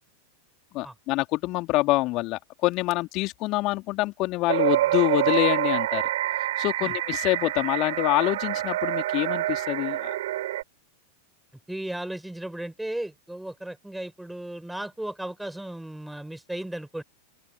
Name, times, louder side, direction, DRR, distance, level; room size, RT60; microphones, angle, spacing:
voice 1, 0.7-6.0 6.6-10.2, left 20 dB, 40° left, 3.1 m, -26 dB
sound 1, 4.5-10.6, right 14 dB, 55° right, 5.7 m, -27 dB
voice 2, 11.7-17.0, right 1 dB, 5° right, 5.3 m, -35 dB
open air
figure-of-eight pair, 90°, 0 cm